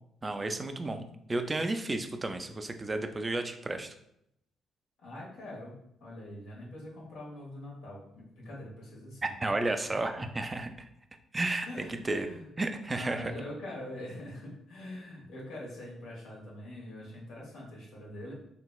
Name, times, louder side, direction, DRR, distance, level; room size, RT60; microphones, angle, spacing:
voice 1, 0.2-1.0 1.3-3.9 9.2-10.7 11.3-11.7 12.0-12.3 12.6-13.3, right 2 dB, 20° right, 6 dB, 0.3 m, -32 dB
voice 2, 5.0-9.4 9.9-10.3 11.6-12.6 12.9-18.3, left 1 dB, 85° left, -4 dB, 1.2 m, -44 dB
3.3 x 2.9 x 2.3 m, 0.76 s
cardioid pair, 90°, 0 cm